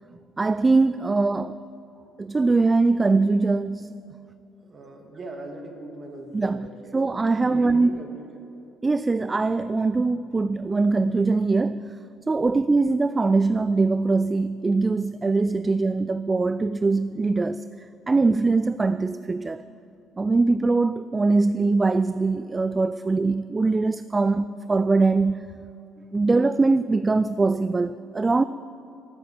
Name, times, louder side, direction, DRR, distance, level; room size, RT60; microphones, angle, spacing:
voice 1, 0.4-1.6 2.2-4.0 6.3-6.7 6.9-8.0 8.8-12.0 12.3-17.6 18.1-19.6 20.2-25.5 26.1-28.4, right 3 dB, 25° right, 0.3 m, -22 dB
voice 2, 4.6-7.0 7.3-8.4 12.5-12.7, right 2 dB, 45° right, 2.3 m, -40 dB
14.5 x 8.4 x 7.3 m
hypercardioid pair, 55°, 0 cm